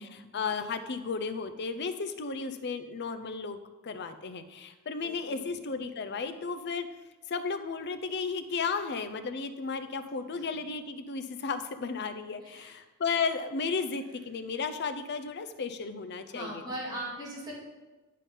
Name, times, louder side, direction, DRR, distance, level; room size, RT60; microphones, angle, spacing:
voice 1, 0.0-6.9 7.3-16.6, left 5 dB, 50° left, 9 dB, 0.5 m, -34 dB
voice 2, 5.0-5.6 10.3-10.4 12.4-12.7 16.3-17.5, right 1 dB, 20° right, -6 dB, 2.3 m, -40 dB
9.9 x 3.7 x 5.4 m, 1.2 s
head